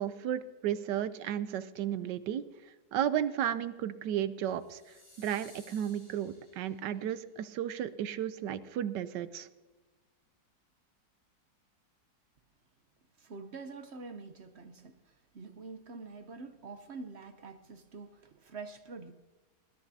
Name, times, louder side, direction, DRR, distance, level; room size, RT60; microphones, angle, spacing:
voice 1, 0.0-9.5, right 10 dB, 75° right, 14 dB, 1.2 m, -34 dB
sound 1, 4.5-7.0, left 1 dB, 85° left, 6.8 m, -58 dB
voice 2, 13.2-19.1, right 4 dB, 60° right, 9 dB, 0.7 m, -46 dB
20.5 x 14.0 x 2.7 m, 1.2 s
omnidirectional pair, 2.0 m